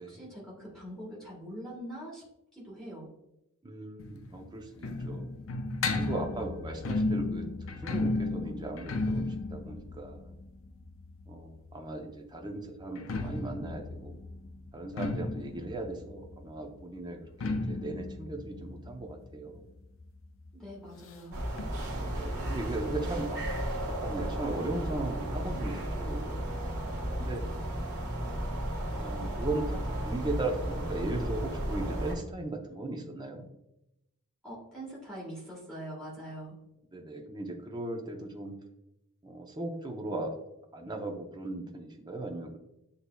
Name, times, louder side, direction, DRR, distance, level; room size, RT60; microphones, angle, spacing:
voice 1, 0.1-2.2 2.5-3.1 20.5-21.4 34.4-36.5, right 1 dB, 5° left, -6 dB, 1.3 m, -43 dB
voice 2, 3.6-5.3 5.9-7.5 7.8-10.3 11.3-14.1 14.7-19.6 21.9-23.5 23.7-26.4 27.2-27.4 28.9-33.5 36.9-38.5 39.2-40.4 40.7-42.6, right 2 dB, 20° right, 2 dB, 0.6 m, -37 dB
sound 1, 4.0-11.7 12.8-20.2 20.5-20.6 20.8-20.9 21.6-21.7, left 2 dB, 60° left, 0.4 m, -34 dB
sound 2, 21.3-32.1, right 1 dB, 90° right, 1.2 m, -34 dB
8.0 x 2.7 x 2.2 m, 0.87 s
head